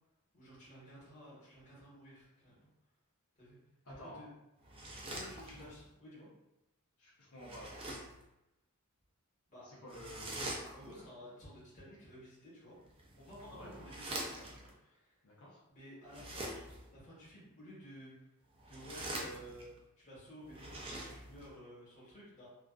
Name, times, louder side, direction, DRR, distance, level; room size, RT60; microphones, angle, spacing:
voice 1, 0.3-2.7 3.4-3.6 3.8-4.3 5.0-6.3 9.5-9.7 10.7-12.8 13.2-15.2 15.7-16.5 16.9-18.3 18.7-19.7 20.0-22.5, equal, 35° left, -8 dB, 1.2 m, -53 dB
voice 2, 3.9-4.2 7.0-7.7 9.6-10.4 13.5-13.7 15.2-15.6, equal, 90° left, -5 dB, 0.7 m, -51 dB
sound 1, 4.6-5.9 7.4-8.2 9.9-11.1 12.9-14.7 16.0-16.9 18.5-19.8 20.4-21.5, right 1 dB, 25° right, 0.4 m, -45 dB
2.4 x 2.4 x 2.2 m, 0.90 s
head